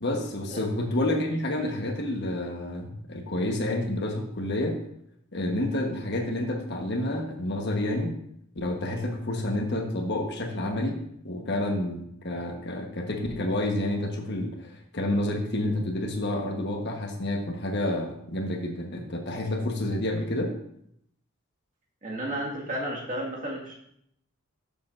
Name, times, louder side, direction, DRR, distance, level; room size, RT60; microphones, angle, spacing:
voice 1, 0.0-4.8 5.3-8.1 8.5-11.0 11.2-20.5, left 1 dB, 55° left, 3 dB, 1.2 m, -29 dB
voice 2, 22.0-23.7, right 1 dB, 40° right, -3 dB, 1.9 m, -32 dB
12.0 x 6.9 x 2.6 m, 0.72 s
head